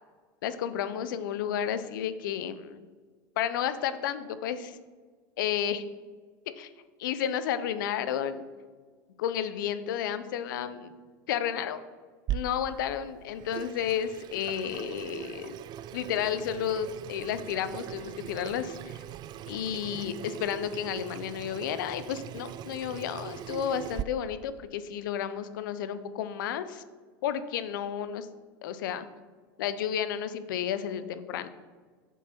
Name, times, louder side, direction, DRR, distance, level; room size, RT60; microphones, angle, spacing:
voice 1, 0.4-2.8 3.4-4.8 5.4-5.8 6.6-6.7 7.0-8.4 9.2-10.9 11.3-11.8 12.3-15.6 15.9-19.0 19.5-26.8 27.2-28.3 28.6-29.1 29.6-31.5, left 9 dB, 75° left, 12 dB, 0.7 m, -32 dB
Water tap faucet / Sink (filling or washing), 12.3-24.0, right 11 dB, 40° right, 0.4 m, -40 dB
7.9 x 7.3 x 4.4 m, 1.5 s
hypercardioid pair, 95°, 11 cm